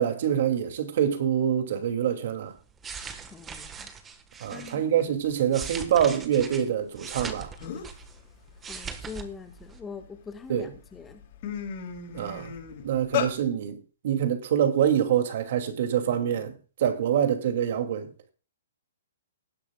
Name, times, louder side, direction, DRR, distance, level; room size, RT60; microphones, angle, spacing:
voice 1, 0.0-2.5 4.4-7.5 10.5-10.7 12.1-12.5 12.8-13.8 14.0-18.1, right 9 dB, 50° right, 2.6 m, -25 dB
sound 1, 2.6-4.8 5.3-8.2 8.5-9.3 9.6-9.8, right 6 dB, 10° right, 1.5 m, -40 dB
voice 2, 3.3-3.9 4.5-4.9 8.7-11.2, left 5 dB, 10° left, 1.7 m, -42 dB
sound 2, 7.2-7.3 7.6-8.0 8.5-10.0 10.6-10.8 11.1-13.3, left 9 dB, 40° left, 6.5 m, -33 dB
19.0 x 10.0 x 2.4 m
hypercardioid pair, 155°, 0 cm